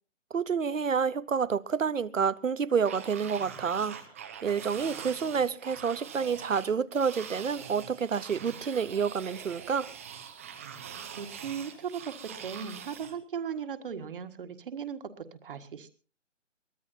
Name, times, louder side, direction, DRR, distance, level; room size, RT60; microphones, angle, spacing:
voice 1, 0.3-4.0 4.4-9.9, right 6 dB, 85° right, 1.0 m, -29 dB
sound 1, 2.8-13.2, right 8 dB, 10° right, 0.7 m, -44 dB
voice 2, 11.2-15.9, right 7 dB, 45° right, 1.6 m, -38 dB
23.0 x 17.5 x 2.7 m
figure-of-eight pair, 155°, 37 cm